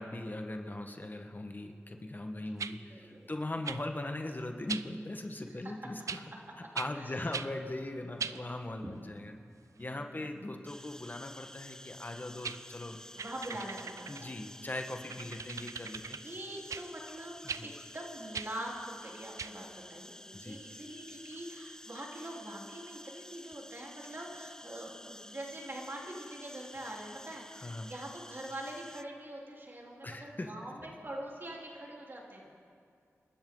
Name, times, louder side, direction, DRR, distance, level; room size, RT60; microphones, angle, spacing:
voice 1, 0.0-6.2 6.6-9.3 9.8-13.0 13.5-13.6 14.1-16.2 17.4-17.7 20.3-20.6 27.5-27.9 30.0-30.5 30.9-31.0, left 1 dB, 35° left, 4 dB, 1.4 m, -40 dB
voice 2, 2.3-3.3 5.5-5.7 6.9-7.1 8.3-8.9 9.8-10.5 13.1-14.3 16.0-32.5, right 1 dB, 40° right, -3 dB, 3.8 m, -44 dB
sound 1, 2.6-2.8 3.6-3.8 4.7-4.9 6.1-6.2 6.7-6.9 7.3-7.5 8.2-8.4 12.0-12.1 12.4-12.6 13.2-14.3 15.1-16.2 16.7-16.8 17.5-17.6 18.3-18.5 19.4-19.5, right 6 dB, 80° right, 0.5 m, -39 dB
sound 2, 10.7-29.0, left 1 dB, 10° left, 0.6 m, -51 dB
28.0 x 12.5 x 3.9 m, 2.4 s
cardioid pair, 40°, 5 cm